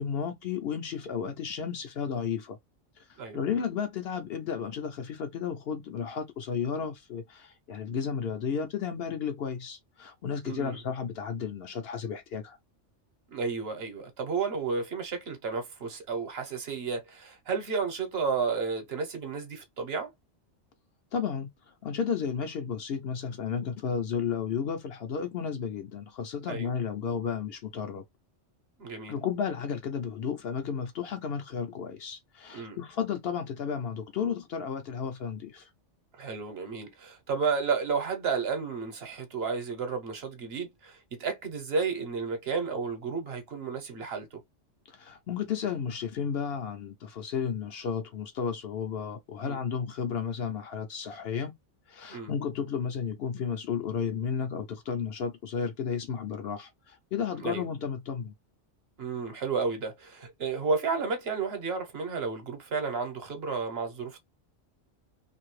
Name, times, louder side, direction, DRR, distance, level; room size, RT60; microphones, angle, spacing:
voice 1, 0.0-2.6 3.3-12.6 21.1-21.5 21.8-28.0 29.1-35.7 44.9-51.5 51.9-58.3, left 7 dB, 65° left, 0.7 m, -33 dB
voice 2, 10.4-10.8 13.3-20.1 26.5-26.7 28.8-29.2 32.5-32.8 36.2-44.4 49.4-49.6 52.1-52.3 57.4-57.6 59.0-64.2, right 5 dB, 60° right, 1.0 m, -32 dB
2.7 x 2.6 x 3.1 m
omnidirectional pair, 1.2 m